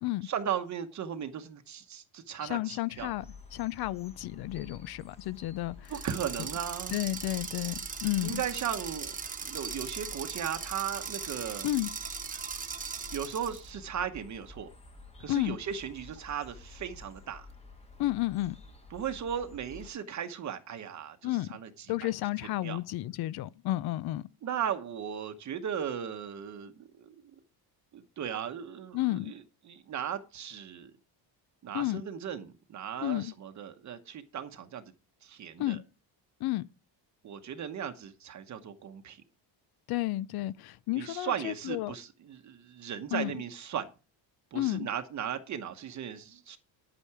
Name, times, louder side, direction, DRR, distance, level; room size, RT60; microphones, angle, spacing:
voice 1, 0.2-3.1 5.9-7.0 8.2-9.1 9.4-11.7 13.1-14.7 15.2-17.5 18.9-22.1 22.6-22.8 24.4-27.1 27.9-30.9 31.6-34.8 35.2-35.8 37.2-39.2 40.9-43.9 44.5-46.6, right 8 dB, 40° right, 1.0 m, -37 dB
voice 2, 2.4-3.2 3.5-5.9 6.9-8.4 11.6-11.9 15.3-15.6 18.0-18.6 21.2-21.5 21.9-24.3 28.9-29.3 31.7-32.0 33.0-33.3 35.6-35.8 36.4-36.6 39.9-41.9 43.1-43.3 44.5-44.9, left 16 dB, 60° left, 0.6 m, -32 dB
sound 1, 3.0-19.9, left 3 dB, 15° left, 1.3 m, -51 dB
sound 2, 5.8-13.7, right 6 dB, 20° right, 1.0 m, -39 dB
10.5 x 8.7 x 4.7 m
cardioid pair, 170°, 44 cm